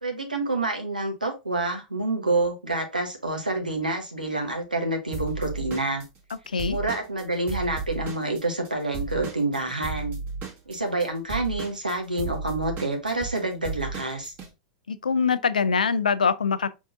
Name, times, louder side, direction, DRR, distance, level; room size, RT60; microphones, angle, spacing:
voice 1, 0.0-6.0 6.7-10.2 10.7-14.3, right 2 dB, 85° right, 1.2 m, -28 dB
Drum kit / Drum, 5.1-8.7 8.9-14.5, right 4 dB, 35° right, 1.7 m, -34 dB
voice 2, 6.5-6.8 14.9-16.7, left 5 dB, 75° left, 0.4 m, -23 dB
5.1 x 3.6 x 2.6 m
figure-of-eight pair, 95°, 4 cm